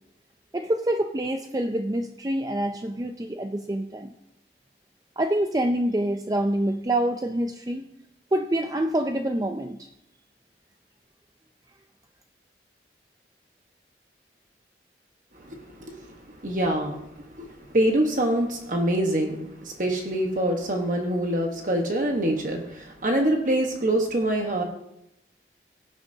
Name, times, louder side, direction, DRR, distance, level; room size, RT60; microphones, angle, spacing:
voice 1, 0.5-4.1 5.2-7.8 8.3-9.9, right 1 dB, 20° right, 5 dB, 0.4 m, -26 dB
voice 2, 15.4-16.1 16.4-24.6, right 1 dB, 45° right, 2 dB, 1.2 m, -25 dB
17.5 x 9.0 x 2.8 m, 0.81 s
head